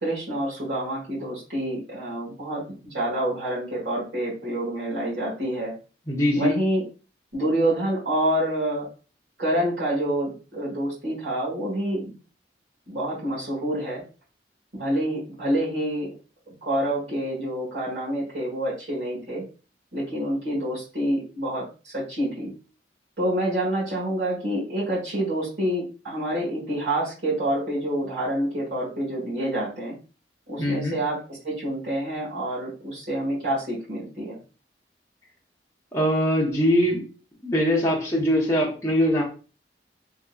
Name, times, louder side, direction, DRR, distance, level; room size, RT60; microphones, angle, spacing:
voice 1, 0.0-5.7 6.3-6.8 7.3-8.9 9.4-12.1 12.9-14.0 14.7-16.1 16.6-19.4 19.9-22.5 23.2-29.9 30.5-34.4, right 1 dB, 70° right, -6 dB, 1.5 m, -27 dB
voice 2, 6.1-6.5 30.6-31.0 35.9-37.0 37.4-39.2, equal, 15° left, -3 dB, 0.7 m, -22 dB
3.7 x 2.7 x 2.3 m, 0.35 s
head